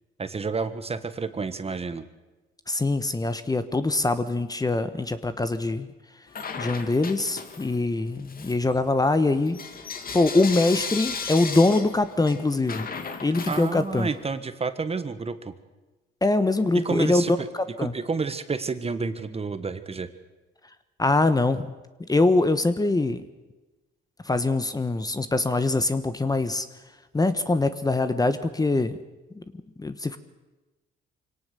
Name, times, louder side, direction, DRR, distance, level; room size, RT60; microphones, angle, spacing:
voice 1, 0.2-2.0 13.5-15.5 16.7-17.5 17.8-20.1, right 4 dB, 30° right, 11 dB, 1.5 m, -30 dB
voice 2, 2.7-5.9 6.6-9.6 10.1-12.9 13.2-14.1 16.2-17.9 21.0-21.7 22.1-23.2 24.3-26.6 27.1-29.0 29.4-29.5 29.8-30.2, left 2 dB, 20° left, 11 dB, 1.2 m, -23 dB
Bell / Coin (dropping), 6.3-7.9 8.2-14.2, left 5 dB, 45° left, 2.1 m, -36 dB
24.5 x 18.0 x 6.9 m, 1.1 s
cardioid pair, 90°, 20 cm